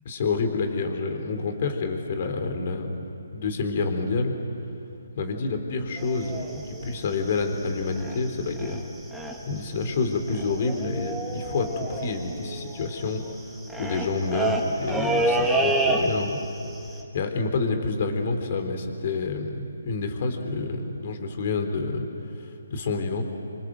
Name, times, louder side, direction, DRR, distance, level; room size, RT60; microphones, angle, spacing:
voice 1, 0.1-4.3 5.1-8.8 9.5-13.2 13.8-16.4 17.1-22.0 22.4-23.3, left 3 dB, 45° left, 5 dB, 3.8 m, -28 dB
sound 1, 6.0-8.3 8.6-8.8 9.1-9.6 9.8-9.9 10.1-16.5 16.7-17.0, right 2 dB, ahead, 2.4 m, -28 dB
28.5 x 25.0 x 7.7 m, 2.8 s
figure-of-eight pair, 145°, 0 cm